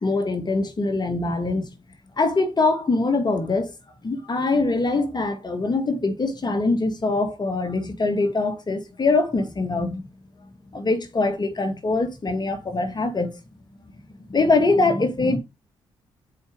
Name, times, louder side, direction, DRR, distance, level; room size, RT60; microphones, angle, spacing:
voice 1, 0.0-1.7 2.2-3.7 4.0-10.1 10.7-13.4 14.3-15.4, left 3 dB, 40° left, 2.1 m, -23 dB
6.8 x 5.1 x 5.1 m
supercardioid pair, 50°, 12 cm